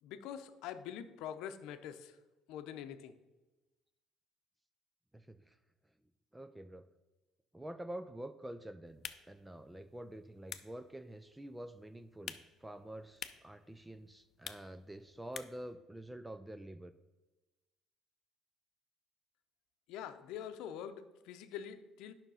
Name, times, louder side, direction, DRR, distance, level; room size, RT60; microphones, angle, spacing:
voice 1, 0.0-2.2 2.5-3.2 19.9-22.1, left 9 dB, 80° left, 9 dB, 0.7 m, -45 dB
voice 2, 5.1-5.6 6.3-6.9 7.5-16.9, right 1 dB, 10° right, 11 dB, 0.4 m, -47 dB
sound 1, 8.9-15.7, left 8 dB, 45° left, 0.6 m, -51 dB
9.2 x 5.8 x 5.5 m, 1.1 s
cardioid pair, 125°, 0 cm